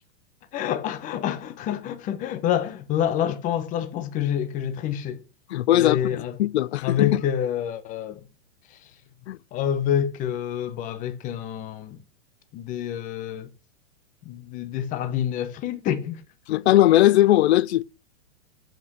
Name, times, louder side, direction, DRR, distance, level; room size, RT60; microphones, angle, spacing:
voice 1, 0.5-5.2 5.7-6.4 6.8-8.2 8.7-8.9 9.5-12.0 12.5-13.5 14.2-16.2, left 10 dB, 20° left, 1.2 m, -27 dB
voice 2, 5.5-6.0 6.4-7.2 9.3-9.4 16.5-17.8, left 14 dB, 65° left, 0.6 m, -19 dB
14.5 x 5.8 x 7.5 m
supercardioid pair, 160°, 36 cm